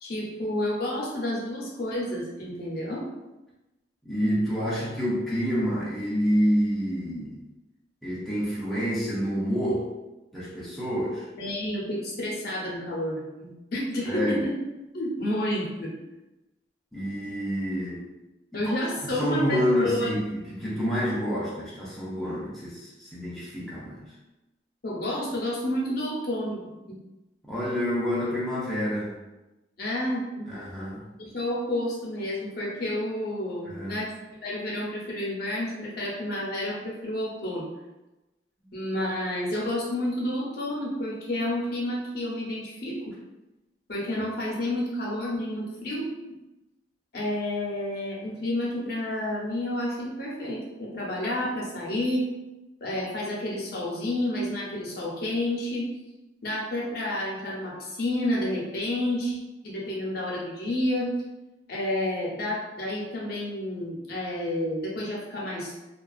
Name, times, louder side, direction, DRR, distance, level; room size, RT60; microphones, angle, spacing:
voice 1, 0.0-3.0 11.4-14.5 14.9-15.9 18.5-20.1 24.8-27.0 29.8-30.6 31.2-34.1 34.4-37.7 38.7-43.1 43.9-46.1 47.1-52.3 52.8-55.9 56.4-59.4 59.6-61.1 61.7-65.7, left 1 dB, 55° left, -4 dB, 0.6 m, -30 dB
voice 2, 4.0-7.4 8.0-9.9 10.3-11.3 14.0-14.4 16.9-18.1 18.5-18.7 19.0-24.1 27.5-29.2 30.5-31.0 33.7-34.0 38.6-38.8, equal, ahead, -8 dB, 0.4 m, -28 dB
2.3 x 2.3 x 2.4 m, 1.0 s
head